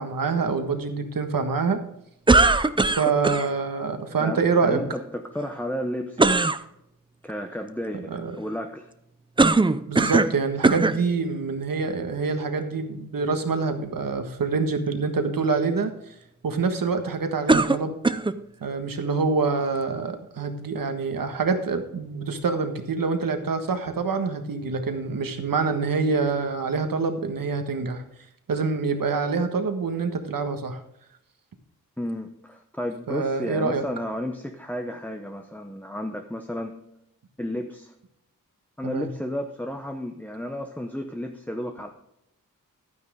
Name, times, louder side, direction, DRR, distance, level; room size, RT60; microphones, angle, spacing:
voice 1, 0.0-1.8 3.0-4.8 7.9-8.3 9.9-15.9 16.4-18.0 18.6-28.0 28.5-30.8 33.1-33.8 38.8-39.1, right 4 dB, 80° right, 6 dB, 1.5 m, -26 dB
sound 1, 2.3-3.5 6.2-6.6 9.4-10.4 10.6-11.0 11.8-11.9 17.5-18.4, right 3 dB, 15° right, 0.4 m, -19 dB
voice 2, 4.2-6.5 7.2-8.8 32.0-36.8 37.4-37.9 38.8-41.9, equal, 5° left, 4 dB, 0.8 m, -32 dB
12.0 x 9.5 x 3.6 m, 0.80 s
wide cardioid pair, 115°, 33 cm